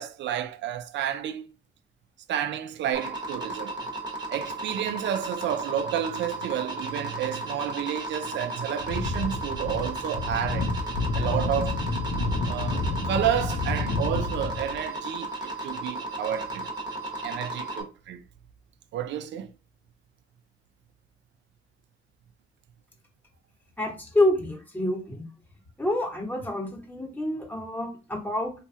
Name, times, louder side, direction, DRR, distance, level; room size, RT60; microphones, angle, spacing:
voice 1, 0.0-1.5 2.3-3.8 4.3-10.8 11.1-11.8 12.5-16.7 17.2-18.2 18.9-19.5, right 10 dB, 65° right, 0.4 m, -30 dB
sound 1, 2.9-17.8, right 2 dB, 20° right, 1.0 m, -35 dB
sound 2, 8.8-14.8, left 3 dB, 75° left, 0.7 m, -29 dB
voice 2, 23.8-25.3 25.8-28.5, left 1 dB, 10° left, 1.1 m, -27 dB
3.1 x 2.3 x 2.7 m
cardioid pair, 90°, 20 cm